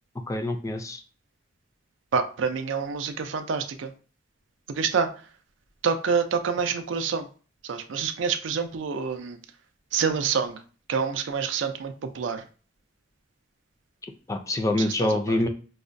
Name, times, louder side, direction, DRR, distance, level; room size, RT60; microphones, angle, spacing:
voice 1, 0.3-1.0 14.3-15.5, left 1 dB, 15° left, 0.3 m, -25 dB
voice 2, 2.1-3.9 4.7-5.3 5.8-7.3 7.6-9.4 9.9-10.6 10.9-12.5 14.8-15.4, right 6 dB, 90° right, 0.4 m, -27 dB
4.7 x 2.1 x 2.5 m
head